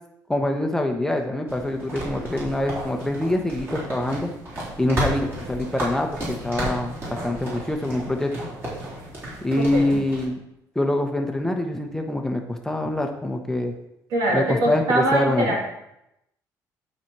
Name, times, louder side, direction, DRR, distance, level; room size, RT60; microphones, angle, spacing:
voice 1, 0.3-4.3 4.8-7.0 7.2-8.5 9.4-10.3 10.7-13.7 14.3-15.5, left 1 dB, 5° left, 3 dB, 0.9 m, -25 dB
sound 1, 1.5-10.3, right 1 dB, 30° right, 3.7 m, -33 dB
voice 2, 9.6-10.0 14.1-15.8, right 1 dB, 80° right, -1 dB, 2.6 m, -23 dB
11.5 x 4.3 x 4.6 m, 0.84 s
cardioid pair, 115°, 7 cm